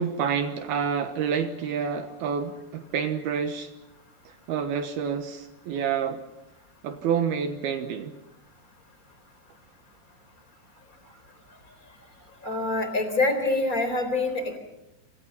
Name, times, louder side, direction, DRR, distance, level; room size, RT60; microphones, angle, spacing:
voice 1, 0.0-3.7 4.3-6.2 6.8-8.1, right 7 dB, 70° right, 8 dB, 2.8 m, -28 dB
voice 2, 12.4-14.6, left 2 dB, 20° left, 8 dB, 4.0 m, -25 dB
27.0 x 26.5 x 5.8 m, 0.92 s
omnidirectional pair, 5.4 m